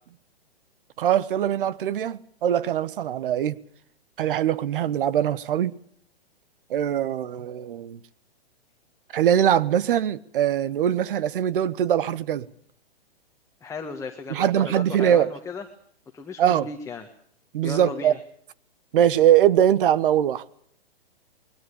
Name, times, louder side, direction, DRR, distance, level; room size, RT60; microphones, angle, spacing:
voice 1, 1.0-3.6 4.2-5.7 6.7-8.0 9.1-12.5 14.3-15.3 16.4-16.7 17.5-18.1 18.9-20.4, right 10 dB, 55° right, 1.3 m, -22 dB
voice 2, 13.6-15.6 16.1-17.1 17.6-18.2, left 4 dB, 10° left, 1.7 m, -35 dB
21.5 x 17.5 x 8.7 m
hypercardioid pair, 130°, 32 cm